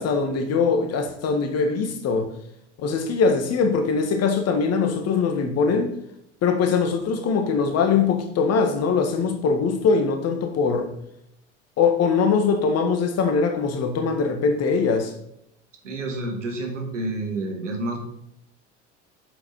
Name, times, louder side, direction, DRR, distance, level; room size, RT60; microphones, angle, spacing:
voice 1, 0.0-2.3 2.8-5.9 6.4-10.9 11.8-15.1, left 5 dB, 45° left, 1.8 m, -22 dB
voice 2, 15.8-18.0, right 2 dB, 90° right, 2.3 m, -29 dB
8.5 x 7.2 x 4.4 m
hypercardioid pair, 75°, 36 cm